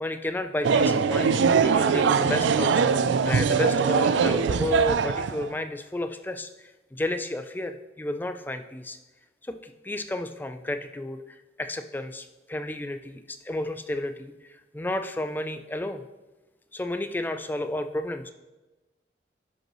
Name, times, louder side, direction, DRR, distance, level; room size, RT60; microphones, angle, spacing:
voice 1, 0.0-9.0 9.4-11.2 11.6-16.0 16.7-18.3, left 1 dB, 10° left, 8 dB, 0.3 m, -32 dB
sound 1, 0.6-5.5, right 5 dB, 85° right, 0.4 m, -22 dB
10.5 x 5.3 x 3.0 m, 1.1 s
head